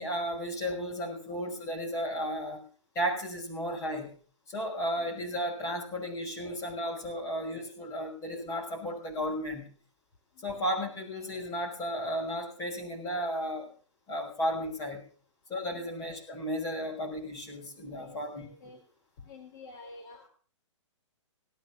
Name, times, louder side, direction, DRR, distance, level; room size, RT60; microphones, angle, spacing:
voice 1, 0.0-2.6 2.9-4.1 4.5-9.7 10.4-13.7 14.1-15.0 15.5-18.5, equal, 20° left, 0 dB, 5.8 m, -34 dB
voice 2, 17.8-18.8 19.2-20.3, left 3 dB, 45° left, 1 dB, 3.5 m, -50 dB
18.0 x 9.7 x 6.1 m, 0.42 s
hypercardioid pair, 150°, 16 cm